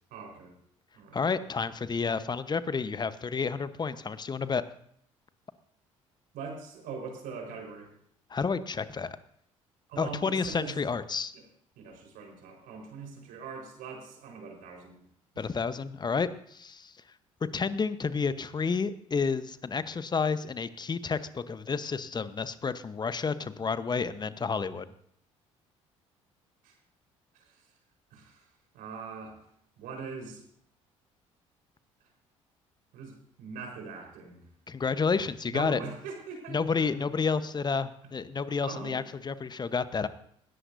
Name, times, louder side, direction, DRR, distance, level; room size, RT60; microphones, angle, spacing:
voice 1, 0.1-0.6 0.9-1.2 6.3-7.9 9.9-10.8 11.3-11.4 11.7-15.0 15.3-15.4 26.6-26.8 27.3-27.7 28.1-28.5 28.7-29.4 29.8-30.4 32.9-34.5 35.5-37.0 38.6-39.0, right 5 dB, 60° right, 2 dB, 4.6 m, -42 dB
voice 2, 1.1-4.6 8.3-9.2 10.0-11.3 15.4-16.9 17.5-24.9 34.7-35.8 36.5-40.1, left 5 dB, 25° left, 13 dB, 1.1 m, -30 dB
20.5 x 17.5 x 2.7 m, 0.68 s
figure-of-eight pair, 55°, 16 cm